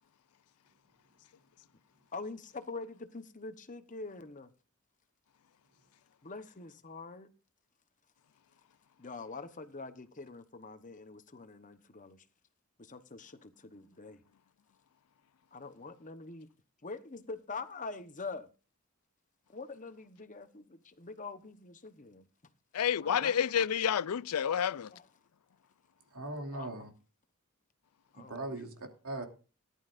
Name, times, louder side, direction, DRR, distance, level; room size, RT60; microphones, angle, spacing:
voice 1, 2.1-4.5 6.2-7.3 9.0-12.3 12.8-14.2 15.5-16.5 16.8-18.5 19.5-22.3 23.0-23.6 24.7-25.1 26.5-26.9 28.1-28.7, left 3 dB, 35° left, 1.1 m, -45 dB
voice 2, 22.7-24.9, left 8 dB, 85° left, 0.5 m, -29 dB
voice 3, 26.1-26.9 28.1-29.3, right 2 dB, 80° right, 2.7 m, -40 dB
18.0 x 11.0 x 2.6 m
head